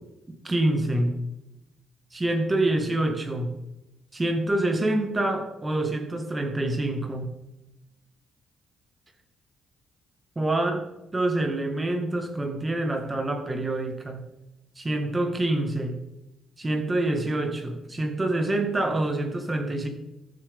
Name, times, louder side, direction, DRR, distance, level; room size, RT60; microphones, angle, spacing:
voice 1, 0.3-1.1 2.1-3.5 4.1-7.3 10.4-10.8 11.1-14.2 14.8-16.0 16.6-19.9, right 1 dB, 20° right, 6 dB, 1.8 m, -26 dB
13.5 x 7.7 x 3.7 m, 0.93 s
cardioid pair, 90°, 0 cm